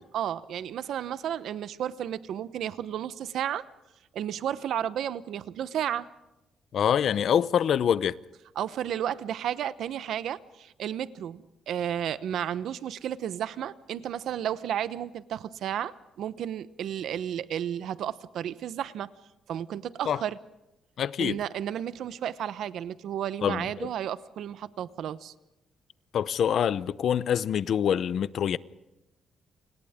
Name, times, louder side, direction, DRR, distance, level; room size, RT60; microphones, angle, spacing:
voice 1, 0.0-3.6 4.1-6.1 8.6-19.1 19.5-20.4 21.2-25.3, right 10 dB, 70° right, 0.9 m, -32 dB
voice 2, 6.7-8.1 20.1-20.2 21.0-21.4 23.4-23.9 26.1-28.6, left 9 dB, 55° left, 0.7 m, -25 dB
29.0 x 26.5 x 3.7 m
cardioid pair, 145°, 0 cm